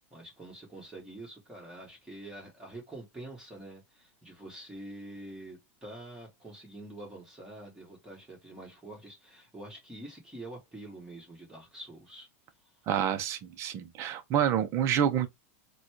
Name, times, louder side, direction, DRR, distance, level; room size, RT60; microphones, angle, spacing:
voice 1, 0.1-12.3, right 1 dB, 10° right, 1.9 m, -46 dB
voice 2, 12.9-15.3, right 9 dB, 35° right, 0.6 m, -28 dB
4.0 x 2.3 x 2.9 m
supercardioid pair, 135°, 8 cm